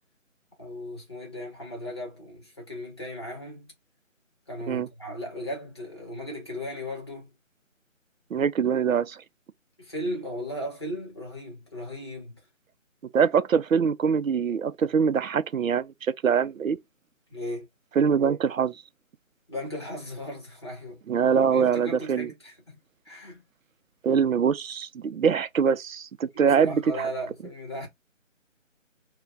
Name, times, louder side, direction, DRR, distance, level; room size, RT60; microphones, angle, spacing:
voice 1, 0.6-3.7 4.5-7.3 9.8-12.4 17.3-17.7 19.5-21.0 21.5-22.8 23.0-23.4 26.3-27.9, equal, 20° left, 0.9 m, -36 dB
voice 2, 8.3-9.2 13.1-16.8 18.0-18.8 21.1-22.3 24.0-27.1, right 6 dB, 80° right, 0.5 m, -23 dB
4.2 x 2.2 x 2.2 m
figure-of-eight pair, 160°, 40 cm